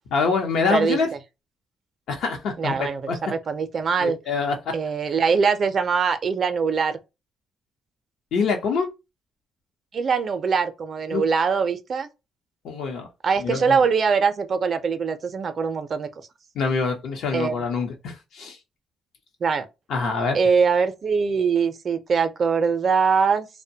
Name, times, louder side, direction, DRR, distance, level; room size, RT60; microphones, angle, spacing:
voice 1, 0.1-1.1 2.1-3.2 4.0-4.7 8.3-8.9 11.1-11.2 12.6-13.1 13.4-13.8 16.5-18.6 19.9-20.4, left 4 dB, 80° left, 0.7 m, -25 dB
voice 2, 2.6-4.2 4.7-7.0 9.9-12.1 13.2-16.1 17.3-17.6 19.4-19.7 20.3-23.5, right 5 dB, 50° right, 0.4 m, -22 dB
2.5 x 2.1 x 2.7 m
cardioid pair, 90°, 0 cm